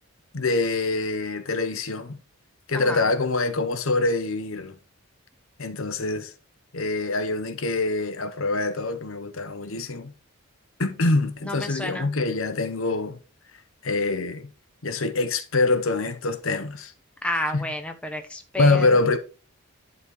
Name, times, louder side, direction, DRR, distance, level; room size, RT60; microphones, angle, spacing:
voice 1, 0.3-2.2 2.7-4.7 5.6-6.3 6.7-10.1 10.8-13.2 13.8-14.5 14.8-16.9 17.5-17.7 18.6-19.2, left 3 dB, 65° left, 0.9 m, -25 dB
voice 2, 2.7-3.1 11.4-12.1 17.2-19.2, left 1 dB, 5° left, 1.0 m, -31 dB
11.0 x 4.2 x 4.7 m
head